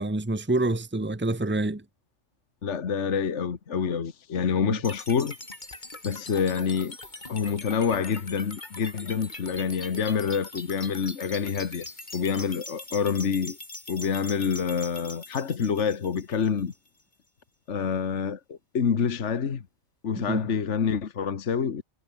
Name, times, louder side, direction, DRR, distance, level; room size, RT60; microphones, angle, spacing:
voice 1, 0.0-1.8 4.6-4.8 20.2-20.5, right 2 dB, 10° right, 1.3 m, -27 dB
voice 2, 2.6-5.4 6.0-7.0 7.3-11.9 12.1-13.6 13.9-16.7 17.7-19.7 20.0-21.8, left 6 dB, 60° left, 1.7 m, -27 dB
sound 1, 4.8-16.9, left 2 dB, 35° left, 3.6 m, -42 dB
omnidirectional pair, 1.4 m